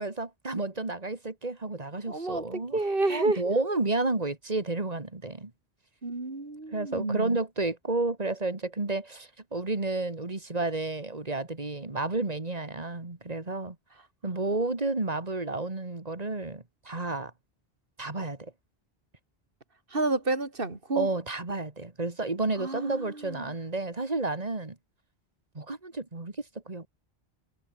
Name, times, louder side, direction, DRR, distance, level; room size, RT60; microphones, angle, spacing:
voice 1, 0.0-2.8 3.1-5.5 6.7-13.8 14.2-17.3 18.0-18.5 21.0-24.8 25.5-26.9, right 2 dB, 40° right, 2.5 m, -31 dB
voice 2, 2.1-3.4 6.0-7.4 19.9-21.1 22.6-23.5, right 2 dB, 60° right, 3.3 m, -30 dB
omnidirectional pair, 1.0 m